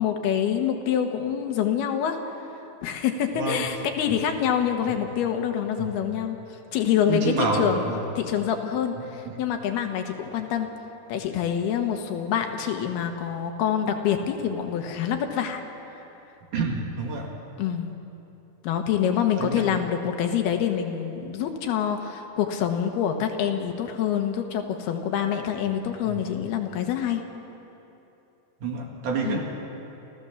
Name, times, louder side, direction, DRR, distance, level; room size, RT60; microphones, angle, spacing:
voice 1, 0.0-2.2 2.8-6.4 6.7-7.9 8.2-10.7 11.1-15.6 17.6-17.9 18.6-27.3 29.2-29.4, left 9 dB, 85° left, 5 dB, 3.3 m, -26 dB
voice 2, 3.3-3.7 5.8-5.9 7.1-8.0 16.5-17.3 19.4-19.8 26.0-26.2 28.6-29.4, right 3 dB, 60° right, 0 dB, 3.3 m, -28 dB
29.5 x 14.5 x 7.1 m, 3.0 s
omnidirectional pair, 4.4 m